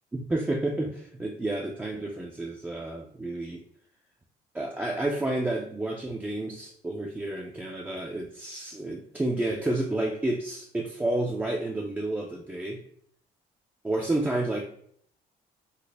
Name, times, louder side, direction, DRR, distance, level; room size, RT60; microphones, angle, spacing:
voice 1, 0.1-3.6 4.5-12.8 13.8-14.6, right 2 dB, 10° right, -1 dB, 0.3 m, -30 dB
4.0 x 2.0 x 3.2 m, 0.65 s
cardioid pair, 110°, 17 cm